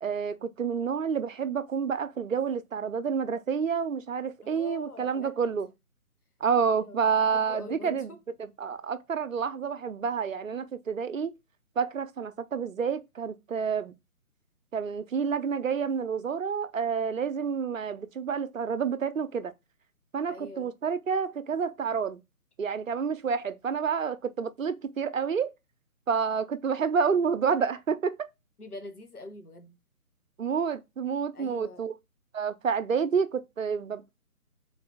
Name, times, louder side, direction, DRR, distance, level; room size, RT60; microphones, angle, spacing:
voice 1, 0.0-5.7 6.4-8.1 8.6-11.3 11.8-13.9 14.7-19.5 20.1-22.2 22.6-25.5 26.1-28.3 30.4-31.9 32.3-34.2, right 6 dB, 60° right, 0.6 m, -29 dB
voice 2, 4.4-5.4 6.7-8.2 20.3-20.7 28.6-29.8 31.3-31.9, left 2 dB, 85° left, 1.3 m, -44 dB
3.9 x 2.7 x 4.7 m
figure-of-eight pair, 150°, 44 cm